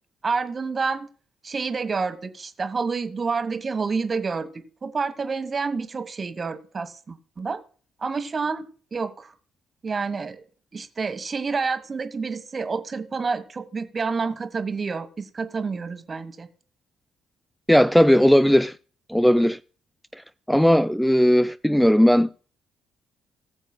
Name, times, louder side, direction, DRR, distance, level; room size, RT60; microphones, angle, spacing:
voice 1, 0.2-1.1 1.4-7.6 8.0-9.3 9.8-10.4 10.7-16.5, right 4 dB, 35° right, 1.4 m, -28 dB
voice 2, 17.7-18.8 19.1-19.6 20.5-22.3, equal, 5° left, 0.4 m, -17 dB
20.0 x 7.2 x 2.2 m
figure-of-eight pair, 45°, 0 cm